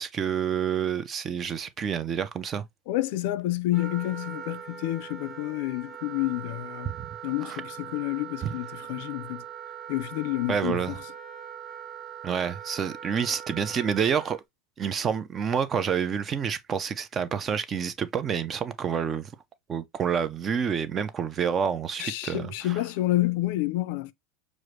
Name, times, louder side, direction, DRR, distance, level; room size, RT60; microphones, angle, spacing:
voice 1, 0.0-2.6 6.9-7.1 7.4-7.6 8.4-8.5 10.5-10.9 12.2-14.4 14.8-19.3 19.7-22.8, right 7 dB, 20° right, 0.4 m, -28 dB
voice 2, 2.9-6.9 7.2-9.4 9.9-11.0 22.0-24.1, left 16 dB, 55° left, 0.4 m, -29 dB
Wind instrument woodwind instrument, 3.7-14.4, right 8 dB, 5° right, 1.2 m, -41 dB
6.2 x 2.5 x 3.1 m
supercardioid pair, 180°, 0 cm